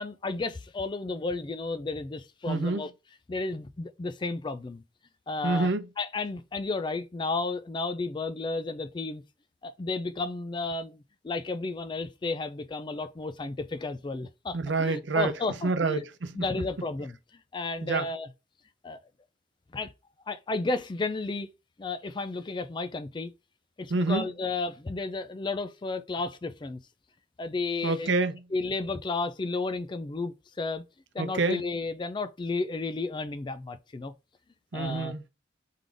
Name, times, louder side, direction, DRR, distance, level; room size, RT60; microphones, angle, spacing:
voice 1, 0.0-2.9 3.3-4.8 5.3-5.7 6.0-9.2 9.6-16.0 16.3-17.2 17.5-18.3 18.8-19.0 19.7-19.9 20.3-21.5 21.8-23.3 23.8-26.8 27.4-28.1 28.5-30.8 31.1-34.1 34.7-35.1, left 3 dB, 25° left, 0.3 m, -32 dB
voice 2, 2.5-2.8 5.4-5.8 14.5-15.3 15.6-16.4 17.8-18.0 23.9-24.3 27.8-28.4 31.2-31.6 34.7-35.3, right 3 dB, 75° right, 0.6 m, -27 dB
3.8 x 3.7 x 3.3 m
head